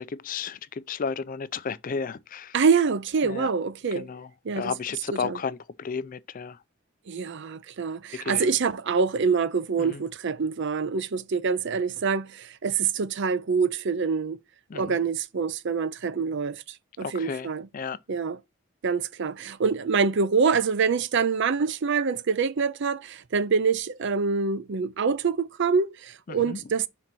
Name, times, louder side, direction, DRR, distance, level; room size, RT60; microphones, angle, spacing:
voice 1, 0.0-2.5 3.3-3.5 3.9-4.3 4.6-6.6 8.1-8.4 9.8-10.0 14.7-15.0 17.0-18.0 26.3-26.6, left 5 dB, 40° left, 0.4 m, -33 dB
voice 2, 2.5-4.1 4.4-4.7 5.1-5.4 7.1-14.4 14.7-17.7 18.1-18.4 18.8-26.9, right 5 dB, 60° right, 0.5 m, -25 dB
5.7 x 3.9 x 6.0 m
head